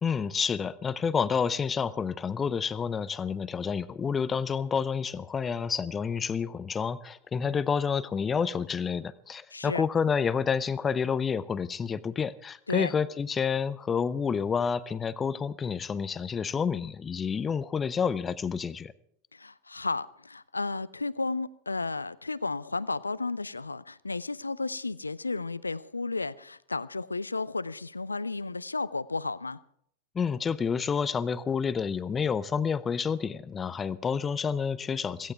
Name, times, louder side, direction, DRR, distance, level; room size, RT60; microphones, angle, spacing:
voice 1, 0.0-18.9 30.1-35.3, left 6 dB, 20° left, 0.6 m, -29 dB
voice 2, 9.5-9.8 12.7-12.9 19.3-29.6, left 3 dB, 80° left, 0.5 m, -33 dB
16.5 x 16.5 x 4.7 m
figure-of-eight pair, 90°, 0 cm